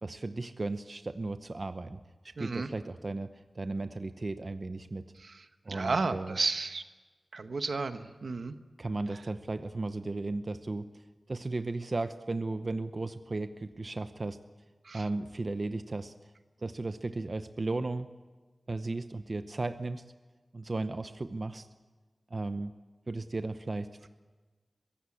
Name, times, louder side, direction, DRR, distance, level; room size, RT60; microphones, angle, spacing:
voice 1, 0.0-3.3 3.5-5.0 5.6-6.4 8.8-10.9 11.3-14.4 14.9-16.1 16.6-18.1 18.7-20.0 20.5-21.7 22.3-22.7 23.1-24.1, right 2 dB, 45° right, 10 dB, 0.8 m, -35 dB
voice 2, 2.4-2.7 5.7-6.8 7.3-8.5 14.9-15.0, right 4 dB, 80° right, 9 dB, 1.1 m, -32 dB
23.0 x 16.0 x 8.6 m, 1.3 s
wide cardioid pair, 90°, 0 cm